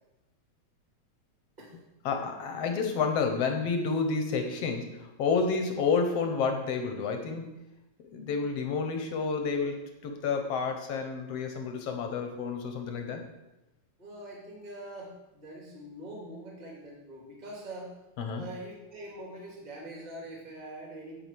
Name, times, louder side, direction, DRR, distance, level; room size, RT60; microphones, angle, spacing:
voice 1, 2.0-7.6 8.1-13.3 18.2-18.5, left 5 dB, 65° left, 5 dB, 1.8 m, -30 dB
voice 2, 14.0-17.9 18.3-21.2, right 1 dB, 15° right, -3 dB, 2.1 m, -43 dB
10.0 x 4.9 x 7.6 m, 0.95 s
omnidirectional pair, 3.4 m